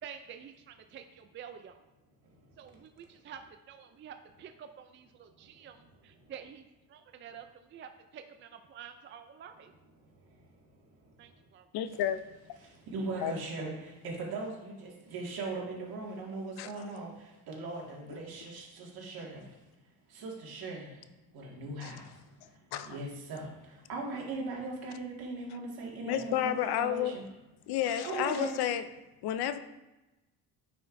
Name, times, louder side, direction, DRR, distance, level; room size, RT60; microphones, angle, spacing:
voice 1, 0.0-1.9 2.6-3.4 3.7-9.7 11.2-11.7, right 8 dB, 30° right, 7 dB, 0.4 m, -49 dB
voice 2, 11.7-12.2 13.2-13.3 16.6-16.7 21.8-22.0 22.7-23.0 26.1-27.2 27.7-28.8 29.2-29.6, left 11 dB, 80° left, 11 dB, 0.6 m, -31 dB
voice 3, 12.6-19.4 20.1-21.0 21.3-22.1 22.8-27.2 28.0-28.7, right 3 dB, 70° right, -2 dB, 2.1 m, -39 dB
9.3 x 5.4 x 2.6 m, 1.0 s
cardioid pair, 130°, 38 cm